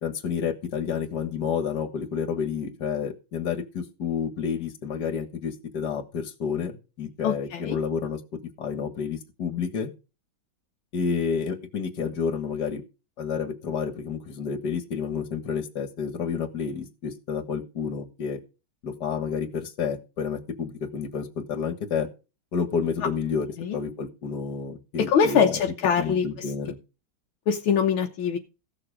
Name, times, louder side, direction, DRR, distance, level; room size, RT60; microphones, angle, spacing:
voice 1, 0.0-6.7 7.0-8.2 8.6-9.9 10.9-12.8 13.2-18.4 18.8-22.1 22.5-23.5 23.7-25.6 26.0-26.8, left 6 dB, 55° left, 2.1 m, -30 dB
voice 2, 7.2-7.8 23.6-23.8 25.1-26.3 27.5-28.4, left 7 dB, 80° left, 1.8 m, -23 dB
15.5 x 7.0 x 5.1 m
omnidirectional pair, 2.2 m